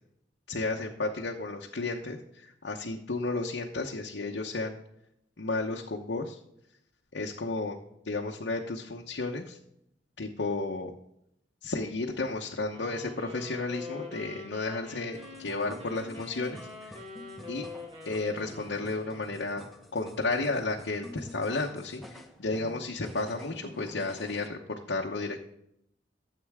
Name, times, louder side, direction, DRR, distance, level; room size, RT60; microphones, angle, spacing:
voice 1, 0.5-4.7 5.4-6.4 7.1-7.8 8.0-9.6 10.2-10.9 11.6-16.6 16.9-17.0 17.5-17.6 18.0-19.7 19.9-24.6 24.9-25.4, left 3 dB, 70° left, 0 dB, 1.0 m, -33 dB
sound 1, 12.7-19.5, left 3 dB, 35° right, 3.2 m, -44 dB
sound 2, 15.1-24.5, equal, ahead, 1.0 m, -49 dB
13.0 x 7.7 x 3.6 m, 0.77 s
head